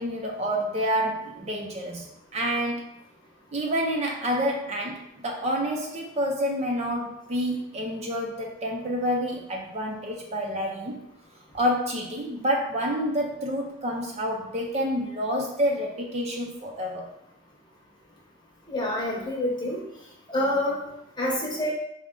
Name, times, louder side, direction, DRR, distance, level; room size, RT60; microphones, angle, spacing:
voice 1, 0.0-2.1 2.3-2.8 3.5-11.0 11.5-17.1, equal, 30° right, 0 dB, 0.4 m, -28 dB
voice 2, 18.7-19.8 20.3-20.8 21.2-21.7, left 1 dB, 20° left, -3 dB, 0.9 m, -27 dB
4.8 x 2.1 x 3.6 m, 0.80 s
head